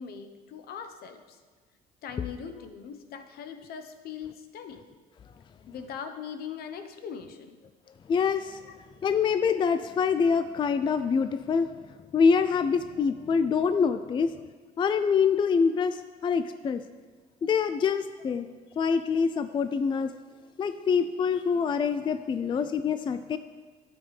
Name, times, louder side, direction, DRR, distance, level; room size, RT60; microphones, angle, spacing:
voice 1, 0.0-1.4 2.0-4.8 5.7-7.6 23.2-23.4, left 7 dB, 65° left, 8 dB, 0.9 m, -40 dB
voice 2, 8.1-8.6 9.0-11.7 12.1-14.4 14.8-16.8 17.4-18.5 18.8-20.1 20.6-23.4, left 6 dB, 30° left, 10 dB, 0.4 m, -25 dB
12.0 x 7.3 x 3.3 m, 1.4 s
cardioid pair, 110°, 17 cm